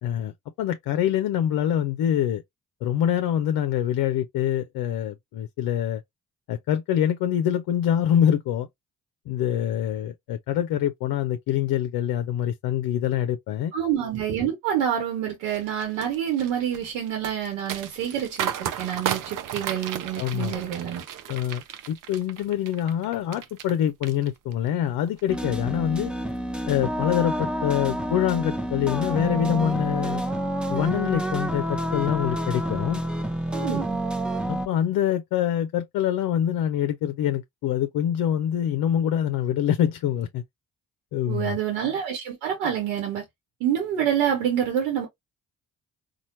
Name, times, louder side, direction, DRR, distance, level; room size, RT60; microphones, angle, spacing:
voice 1, 0.0-2.4 2.8-6.0 6.5-8.7 9.3-13.7 20.2-20.5 21.3-26.1 26.7-30.2 30.7-33.0 34.5-40.4 41.1-41.6, left 10 dB, 60° left, 0.6 m, -25 dB
voice 2, 13.7-21.0 33.5-34.0 41.3-43.2 43.6-45.1, right 9 dB, 80° right, 1.0 m, -27 dB
sound 1, 15.5-23.7 24.0-24.7 25.1-25.3, right 10 dB, 55° right, 0.7 m, -34 dB
sound 2, 25.3-34.7, right 1 dB, ahead, 0.7 m, -28 dB
4.2 x 2.3 x 2.7 m
hypercardioid pair, 40°, 40 cm